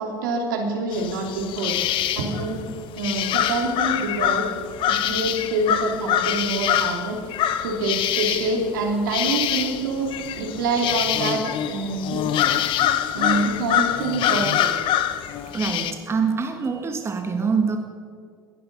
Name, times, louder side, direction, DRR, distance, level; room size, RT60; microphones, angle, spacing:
voice 1, 0.0-1.7 2.2-2.7 2.9-4.5 4.9-7.2 7.6-10.1 10.4-11.4 11.7-12.3 12.9-14.7, right 3 dB, 75° right, 1 dB, 3.0 m, -26 dB
sound 1, 0.9-15.9, left 10 dB, 50° left, 1.0 m, -25 dB
voice 2, 15.5-17.8, right 5 dB, 25° right, 5 dB, 1.6 m, -24 dB
21.0 x 10.5 x 5.3 m, 2.1 s
hypercardioid pair, 75°, 11 cm